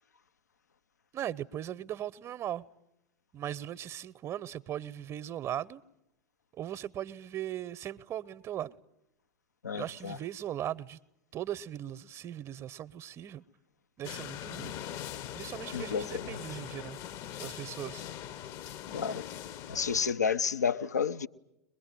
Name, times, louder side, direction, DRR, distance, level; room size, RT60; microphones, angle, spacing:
voice 1, 1.1-2.7 3.3-5.8 6.5-8.7 9.7-11.0 11.3-13.4 14.0-14.7 15.3-17.0 17.4-18.0, right 11 dB, 30° right, 0.9 m, -38 dB
voice 2, 9.6-10.2 15.7-16.6 18.9-19.3 19.7-21.3, left 6 dB, 80° left, 0.8 m, -31 dB
sound 1, 14.0-20.1, left 10 dB, 40° left, 0.9 m, -41 dB
23.0 x 22.0 x 9.2 m
figure-of-eight pair, 90°, 9 cm